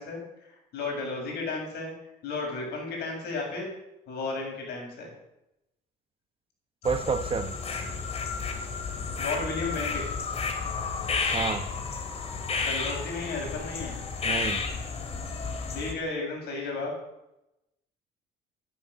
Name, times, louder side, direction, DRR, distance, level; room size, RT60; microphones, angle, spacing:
voice 1, 0.0-1.9 2.2-3.7 4.1-5.1 9.2-10.0 12.6-13.9 15.7-16.9, left 3 dB, 75° left, 0 dB, 7.9 m, -33 dB
sound 1, 6.8-15.9, left 4 dB, 40° left, 2.9 m, -32 dB
voice 2, 6.8-7.5 11.3-11.7 14.2-14.6, right 5 dB, 35° right, 10 dB, 1.1 m, -29 dB
13.5 x 11.5 x 7.4 m, 0.89 s
cardioid pair, 110°, 17 cm